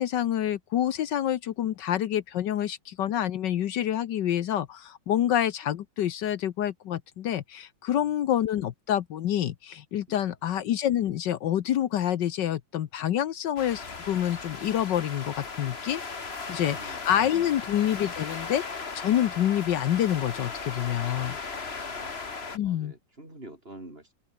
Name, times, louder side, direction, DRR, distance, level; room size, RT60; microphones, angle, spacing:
voice 1, 0.0-18.6 18.9-21.4 22.5-22.9, left 11 dB, 70° left, 1.5 m, -27 dB
sound 1, 13.6-22.6, left 4 dB, 35° left, 2.0 m, -37 dB
voice 2, 16.5-17.0 17.3-17.4 21.0-22.1 22.6-24.1, right 1 dB, 30° right, 6.2 m, -48 dB
open air
omnidirectional pair, 2.0 m